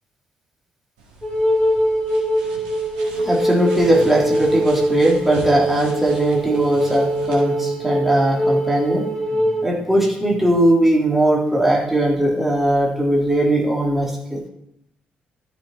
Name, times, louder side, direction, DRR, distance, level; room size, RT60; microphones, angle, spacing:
rennt in Galerie, 1.0-7.4, right 1 dB, 70° right, 1.6 m, -40 dB
Wind instrument woodwind instrument, 1.2-9.7, right 1 dB, 20° left, 3.4 m, -22 dB
voice 1, 3.0-14.4, right 1 dB, 5° right, -3 dB, 3.3 m, -19 dB
13.0 x 5.4 x 4.3 m, 0.78 s
figure-of-eight pair, 40°, 5 cm